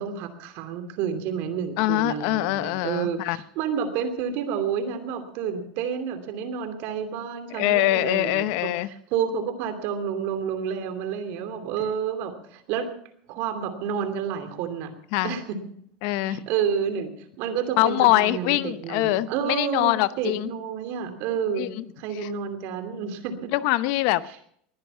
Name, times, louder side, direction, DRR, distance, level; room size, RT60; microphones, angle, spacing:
voice 1, 0.0-12.9 13.3-15.0 15.2-15.6 16.2-21.7 22.0-23.5 24.3-24.4, right 7 dB, 60° right, 9 dB, 2.8 m, -30 dB
voice 2, 1.8-3.4 7.6-8.9 15.1-15.3 16.0-16.4 17.8-20.5 21.6-21.8 22.1-22.3 23.5-24.4, left 17 dB, 65° left, 16 dB, 0.8 m, -23 dB
20.5 x 10.5 x 5.7 m, 0.66 s
supercardioid pair, 120°, 4 cm